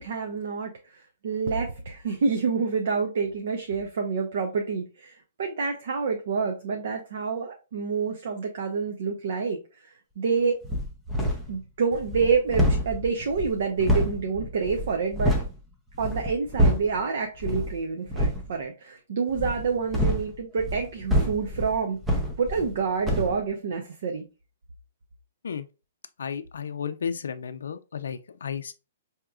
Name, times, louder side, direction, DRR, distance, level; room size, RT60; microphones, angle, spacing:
voice 1, 0.0-10.6 11.5-15.3 16.0-22.0 22.4-24.2, right 5 dB, 60° right, 0.6 m, -28 dB
sound 1, 10.6-11.6 11.9-15.5 15.9-17.0 17.4-17.7 18.1-18.5 19.3-22.8 23.0-23.4, equal, 5° right, 0.5 m, -26 dB
voice 2, 26.2-28.7, left 7 dB, 85° left, 0.4 m, -33 dB
4.7 x 2.8 x 2.3 m
hypercardioid pair, 165°, 0 cm